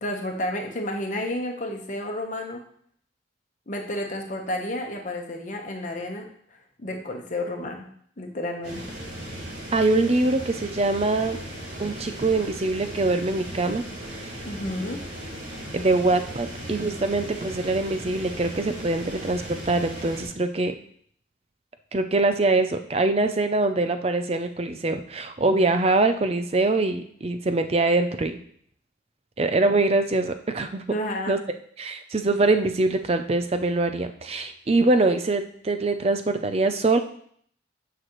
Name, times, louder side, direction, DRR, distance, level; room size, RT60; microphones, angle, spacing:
voice 1, 0.0-2.6 3.7-6.3 6.8-7.9 8.2-8.9 14.4-15.0 30.9-31.3, left 1 dB, 40° left, 2 dB, 1.1 m, -31 dB
sound 1, 8.6-20.2, right 1 dB, 65° right, 3.6 m, -37 dB
voice 2, 9.7-11.4 11.8-13.8 14.1-14.4 15.7-20.7 21.9-28.3 29.4-30.8 31.3-31.4 31.8-37.0, right 2 dB, 30° right, 9 dB, 0.5 m, -23 dB
9.1 x 6.0 x 3.1 m, 0.63 s
head